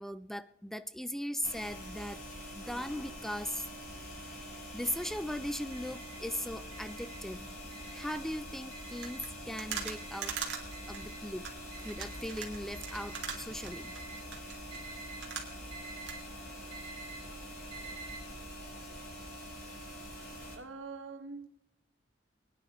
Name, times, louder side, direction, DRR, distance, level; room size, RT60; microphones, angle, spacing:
voice 1, 0.0-2.2 2.6-3.7 4.3-4.5 4.7-7.5 7.9-10.3 10.9-11.4 11.8-13.9, equal, ahead, 0.3 m, -38 dB
sound 1, 1.4-20.6, equal, 50° left, 6.4 m, -45 dB
Alarm, 4.8-5.2 5.7-6.2 6.7-7.2 7.7-8.2 8.7-9.2 9.7-10.2 10.7-11.2 11.7-12.2 12.7-13.2 13.7-14.2 14.7-15.2 15.7-16.2 16.7-17.2 17.7-18.2, right 5 dB, 30° right, 3.3 m, -49 dB
sound 2, 9.0-15.8 16.1-16.2, right 6 dB, 60° right, 2.4 m, -42 dB
voice 2, 20.5-21.5, right 4 dB, 80° right, 1.5 m, -44 dB
23.5 x 9.9 x 3.1 m
head